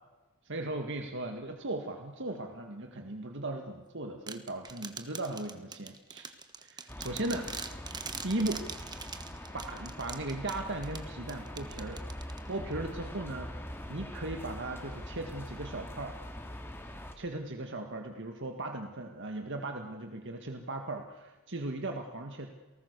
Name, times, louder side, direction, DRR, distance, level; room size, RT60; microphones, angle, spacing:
voice 1, 0.4-6.3 6.6-7.5 7.9-8.7 9.5-12.0 12.5-13.5 13.9-16.2 17.2-22.5, right 2 dB, 55° right, 4 dB, 1.8 m, -37 dB
sound 1, 4.3-12.7, right 5 dB, 20° right, 1.3 m, -44 dB
sound 2, 6.9-17.1, equal, 10° left, 2.5 m, -43 dB
29.0 x 19.0 x 6.8 m, 1.2 s
head